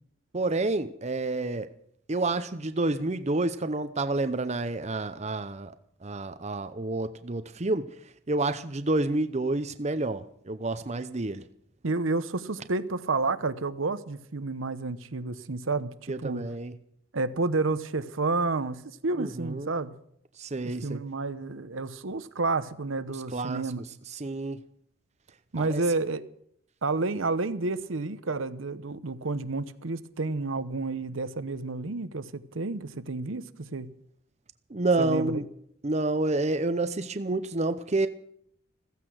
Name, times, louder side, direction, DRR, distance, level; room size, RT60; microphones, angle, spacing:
voice 1, 0.3-1.7 2.1-5.7 6.0-7.9 8.3-11.4 16.1-16.7 19.2-19.7 20.4-21.0 23.3-23.6 24.1-24.6 25.6-25.8 34.7-35.5 35.8-38.1, right 2 dB, 35° right, 0.7 m, -29 dB
voice 2, 11.8-16.4 17.1-19.9 20.6-23.8 25.5-26.2 26.8-33.9 35.0-35.4, right 3 dB, 80° right, 0.9 m, -30 dB
15.0 x 15.0 x 6.3 m
head